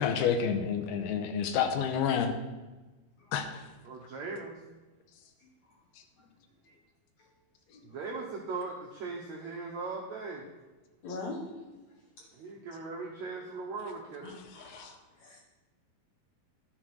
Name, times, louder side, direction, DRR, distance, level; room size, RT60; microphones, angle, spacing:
voice 1, 0.0-2.3 3.3-3.5 14.7-14.9, left 7 dB, 80° left, 6 dB, 2.7 m, -29 dB
voice 2, 3.8-4.6 7.8-10.4 12.3-14.4, right 3 dB, 75° right, -1 dB, 1.6 m, -39 dB
voice 3, 11.0-11.4 11.7-11.8 14.2-15.0 15.2-15.4, left 3 dB, 65° left, -1 dB, 1.8 m, -41 dB
11.5 x 6.3 x 6.0 m, 1.2 s
omnidirectional pair, 4.7 m